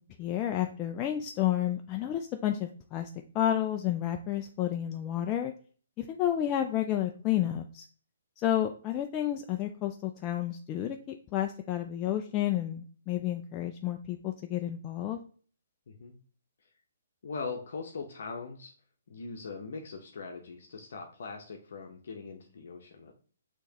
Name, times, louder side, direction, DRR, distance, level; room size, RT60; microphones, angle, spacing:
voice 1, 0.2-3.1 3.3-5.5 6.0-7.8 8.4-15.2, left 12 dB, 20° left, 4 dB, 0.3 m, -31 dB
voice 2, 15.9-16.2 17.2-18.7 19.1-23.1, left 4 dB, 65° left, 1 dB, 0.8 m, -41 dB
6.3 x 3.0 x 2.8 m, 0.43 s
hypercardioid pair, 160°, 0 cm